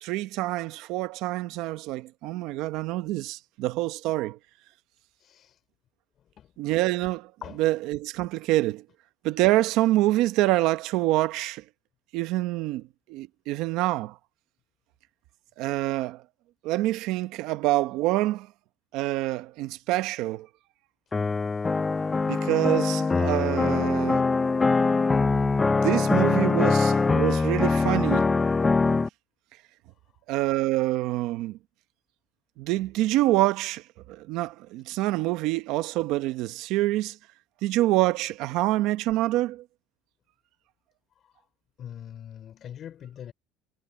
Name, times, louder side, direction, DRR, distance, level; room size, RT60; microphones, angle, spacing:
voice 1, 0.0-4.4 6.6-7.3 7.6-8.8 9.2-11.6 12.1-14.2 15.6-16.2 16.6-18.5 18.9-20.5 22.3-24.3 25.7-28.3 30.3-31.6 32.6-37.2 37.6-39.6, right 17 dB, 55° right, 0.9 m, -26 dB
voice 2, 5.2-5.6 6.4-6.5 7.4-7.6 41.1-41.4 41.8-43.3, left 10 dB, 30° left, 4.9 m, -42 dB
sound 1, 21.1-29.1, left 4 dB, 10° left, 0.4 m, -23 dB
cardioid pair, 175°, 0 cm